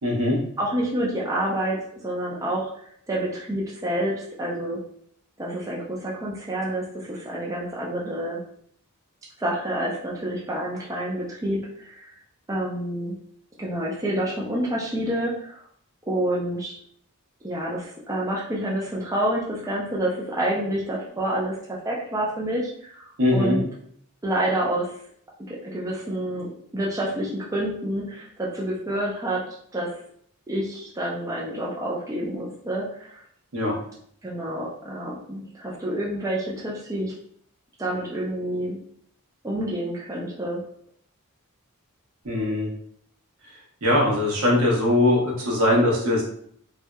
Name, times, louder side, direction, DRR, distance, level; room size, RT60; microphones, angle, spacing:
voice 1, 0.0-0.4 23.2-23.6 33.5-33.8 42.2-42.7 43.8-46.2, left 1 dB, 70° right, -2 dB, 1.0 m, -21 dB
voice 2, 0.6-1.8 2.0-4.1 4.4-4.8 5.4-8.4 9.4-12.1 12.5-13.2 13.6-15.6 16.1-16.8 17.4-21.6 21.8-23.6 24.2-24.9 25.5-29.4 29.7-29.9 30.5-33.2 34.2-37.1 37.8-38.8 39.4-40.6, right 1 dB, 15° right, -5 dB, 0.4 m, -28 dB
3.2 x 2.7 x 2.2 m, 0.63 s
head